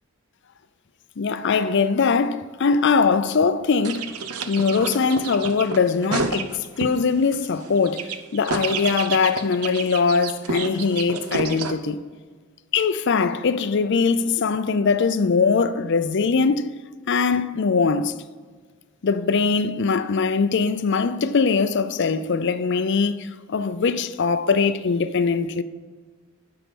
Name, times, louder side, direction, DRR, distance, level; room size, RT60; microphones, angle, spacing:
voice 1, 1.2-4.1 4.5-12.1 12.7-16.7 17.1-18.2 19.0-25.6, left 5 dB, 55° left, 0.5 m, -21 dB
sound 1, 3.8-7.0 7.3-11.7, right 5 dB, 85° right, 0.7 m, -30 dB
10.0 x 5.7 x 5.2 m
head